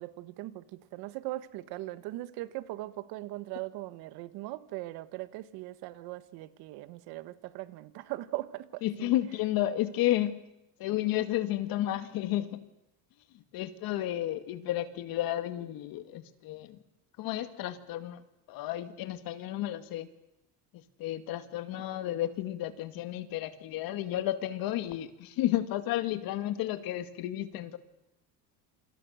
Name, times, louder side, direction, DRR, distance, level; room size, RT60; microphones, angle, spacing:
voice 1, 0.0-9.1, right 17 dB, 65° right, 1.6 m, -40 dB
voice 2, 8.8-10.4 10.8-12.6 13.5-16.8 17.2-18.2 18.5-20.1 20.7-27.8, left 13 dB, 60° left, 2.2 m, -32 dB
27.5 x 25.5 x 6.6 m
cardioid pair, 130°, 40 cm